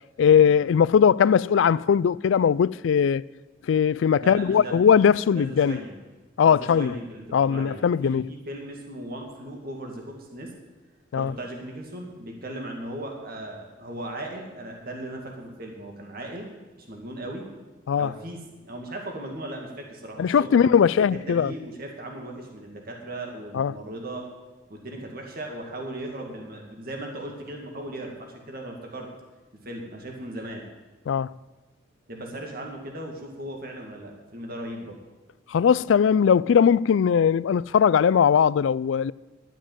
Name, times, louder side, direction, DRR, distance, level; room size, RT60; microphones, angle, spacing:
voice 1, 0.2-3.2 3.7-5.8 6.4-7.0 7.3-8.3 11.1-11.3 17.9-18.1 20.2-21.5 23.5-23.7 31.1-31.3 35.5-39.1, left 7 dB, 80° left, 0.3 m, -20 dB
voice 2, 4.2-4.7 5.3-6.0 6.4-10.5 11.1-16.5 16.8-17.5 18.0-20.7 21.1-24.3 24.7-29.1 29.6-30.6 32.1-35.0, right 1 dB, 50° right, 2.1 m, -37 dB
12.0 x 7.4 x 8.8 m
head